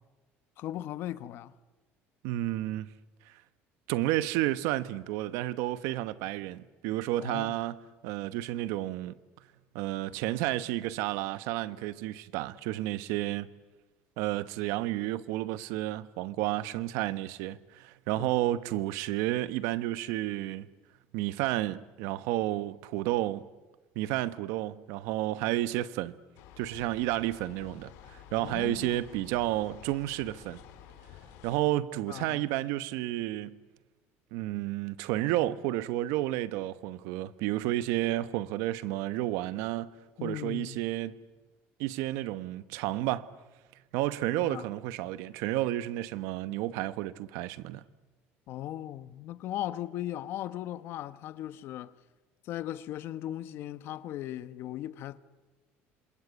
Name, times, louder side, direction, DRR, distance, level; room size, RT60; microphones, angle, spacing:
voice 1, 0.6-1.5 7.2-7.5 18.2-18.4 28.4-29.0 32.1-32.5 40.2-40.8 44.3-44.7 48.5-51.9 52.4-55.2, left 13 dB, 55° left, 1.1 m, -38 dB
voice 2, 2.2-2.9 3.9-9.1 9.7-13.5 14.2-20.7 21.1-23.4 23.9-26.1 26.6-30.6 31.4-33.6 34.3-39.9 40.2-41.2 41.8-43.3 43.9-47.8, right 15 dB, 85° right, 1.1 m, -31 dB
sound 1, 26.4-31.6, left 11 dB, 80° left, 3.8 m, -51 dB
27.5 x 26.5 x 8.2 m
cardioid pair, 160°, 5 cm